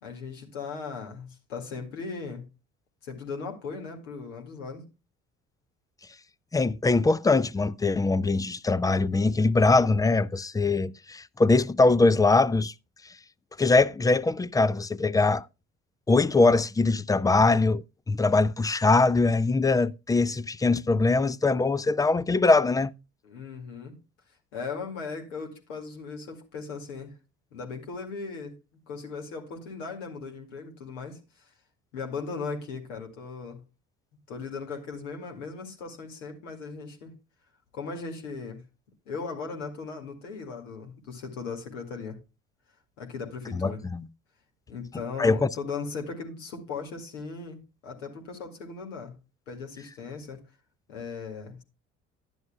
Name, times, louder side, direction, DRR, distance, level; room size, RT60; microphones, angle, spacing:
voice 1, 0.0-2.4 3.0-4.8 23.2-24.0 24.5-27.2 27.5-28.6 28.9-31.2 31.9-33.6 34.3-37.1 37.7-38.6 39.1-42.2 43.0-43.8 44.7-49.1 49.5-50.4 50.9-51.6, left 4 dB, 75° left, 2.2 m, -38 dB
voice 2, 6.5-12.7 13.6-15.5 16.1-22.9 43.5-44.1 45.2-45.5, left 3 dB, 10° left, 0.4 m, -22 dB
11.5 x 10.5 x 2.2 m
figure-of-eight pair, 55°, 37 cm